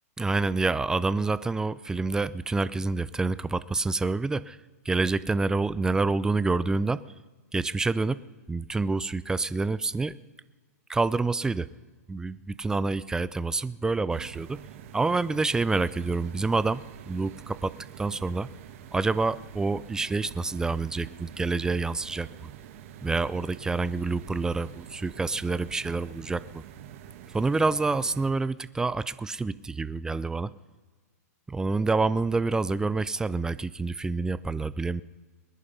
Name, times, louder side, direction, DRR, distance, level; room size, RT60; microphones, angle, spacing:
voice 1, 0.2-4.6 4.9-7.0 7.5-8.2 8.5-10.2 10.9-11.7 12.1-14.6 14.9-18.5 18.9-22.5 23.0-26.6 27.3-30.5 31.5-35.0, right 3 dB, 5° right, 18 dB, 0.4 m, -27 dB
sound 1, 14.1-28.3, right 10 dB, 55° right, 1.3 m, -46 dB
20.5 x 10.0 x 5.6 m, 1.3 s
hypercardioid pair, 130°, 9 cm